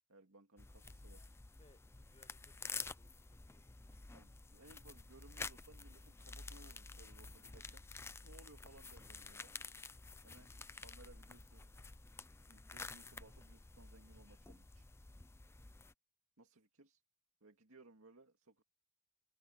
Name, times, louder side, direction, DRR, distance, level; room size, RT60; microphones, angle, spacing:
voice 1, 0.1-1.4 4.1-7.8 8.2-9.5 10.2-11.7 12.5-14.9 16.4-17.0 17.4-18.6, right 2 dB, 70° right, 2.3 m, -63 dB
sound 1, 0.6-15.9, left 4 dB, 10° left, 0.4 m, -51 dB
voice 2, 1.6-3.7 12.8-13.1, left 2 dB, 30° left, 4.5 m, -70 dB
head